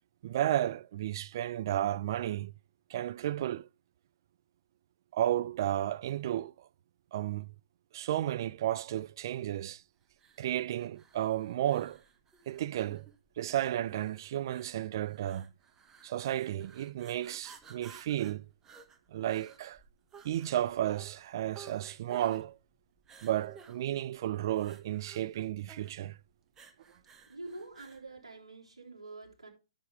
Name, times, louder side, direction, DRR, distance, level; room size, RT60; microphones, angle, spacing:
voice 1, 0.2-2.5 2.9-3.7 5.1-6.7 7.1-7.5 7.9-9.8 10.4-12.0 12.5-13.1 13.4-15.5 16.0-18.5 19.1-19.8 20.2-22.6 23.2-26.2, right 12 dB, 40° right, 0.3 m, -33 dB
sound 1, 10.2-28.1, right 5 dB, 15° right, 1.0 m, -56 dB
voice 2, 27.3-29.5, right 2 dB, 75° right, 3.4 m, -46 dB
10.0 x 7.0 x 3.3 m
figure-of-eight pair, 125°, 3 cm